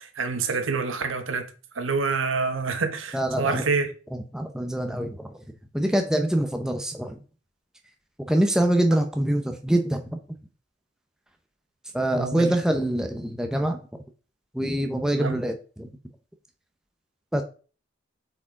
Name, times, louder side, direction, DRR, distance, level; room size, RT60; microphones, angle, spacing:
voice 1, 0.0-3.9 12.1-12.6 15.1-15.4, right 4 dB, 80° right, 1.0 m, -27 dB
voice 2, 3.1-3.6 4.1-5.3 5.7-7.2 8.2-10.2 11.9-13.8 14.5-15.9 17.3-17.4, right 1 dB, 5° right, 0.7 m, -25 dB
8.4 x 4.7 x 3.7 m
head